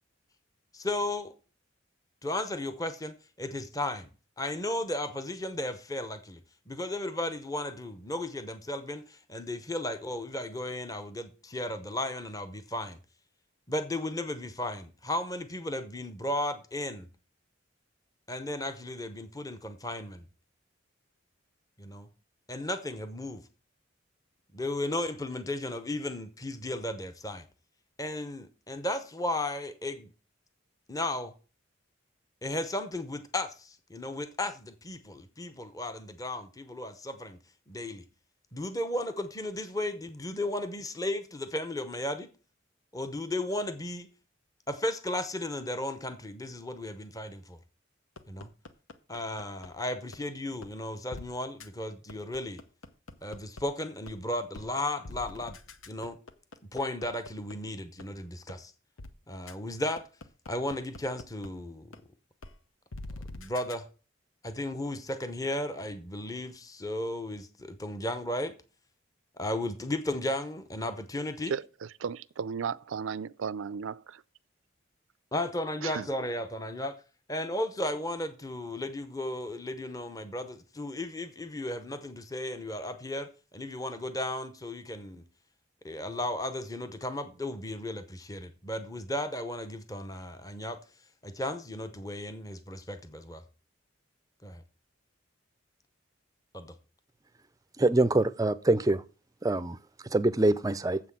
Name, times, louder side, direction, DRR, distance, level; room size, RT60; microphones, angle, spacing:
voice 1, 0.7-1.3 2.2-4.1 4.4-6.4 6.7-13.0 13.7-17.1 18.3-20.2 21.8-22.1 22.5-23.4 24.5-27.4 28.0-30.1 30.9-31.3 32.4-37.4 37.7-38.0 38.5-42.3 42.9-44.1 44.7-47.6 48.3-48.5 49.1-52.6 53.2-55.6 55.9-56.2 56.6-58.7 59.3-60.1 60.5-62.0 63.3-63.9 64.4-68.5 69.4-71.5 75.3-77.0 77.3-85.2 85.8-90.8 91.2-93.4 94.4-94.6 96.5-96.7, left 1 dB, 15° left, 0.7 m, -35 dB
sound 1, 48.2-49.7 50.1-50.2 50.6-50.7 51.1-51.2 51.6-51.7 52.1-53.6 54.1-54.2 54.5-54.7 55.0-57.5 58.0-58.1 58.5-58.6 59.0-59.1 59.5-59.6 60.0-61.5 61.9-62.0 62.4-62.5 62.9-63.7, left 2 dB, 90° left, 0.9 m, -44 dB
voice 2, 71.5-73.9 75.8-76.1, right 6 dB, 80° right, 0.4 m, -34 dB
voice 3, 97.8-99.0 99.4-99.8 100.1-101.0, right 2 dB, 15° right, 0.4 m, -24 dB
7.6 x 6.1 x 7.4 m
head